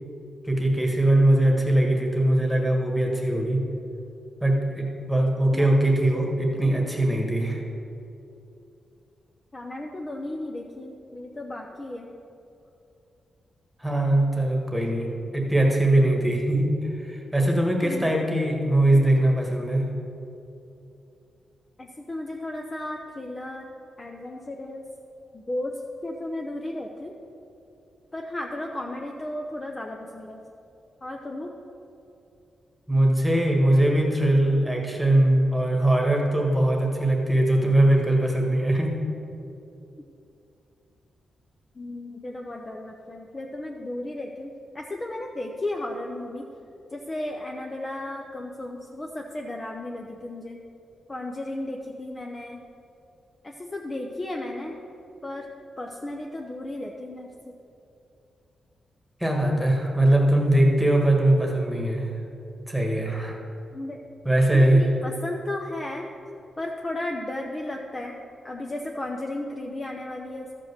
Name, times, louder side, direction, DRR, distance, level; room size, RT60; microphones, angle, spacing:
voice 1, 0.4-3.7 4.4-7.6 13.8-20.0 32.9-39.0 59.2-62.1 62.7-63.4 64.2-64.9, right 1 dB, ahead, 0 dB, 1.6 m, -21 dB
voice 2, 5.5-6.5 9.5-12.1 17.8-18.1 21.8-23.6 24.0-24.8 25.3-25.7 26.0-27.1 28.1-30.4 31.0-31.5 41.8-46.4 46.9-50.6 51.1-52.6 53.4-54.7 55.2-55.5 55.8-57.3 63.7-64.0 64.5-66.1 66.6-68.1 68.4-70.5, left 1 dB, 20° left, 1 dB, 0.6 m, -34 dB
13.0 x 5.2 x 6.7 m, 2.7 s
wide cardioid pair, 135°, 0 cm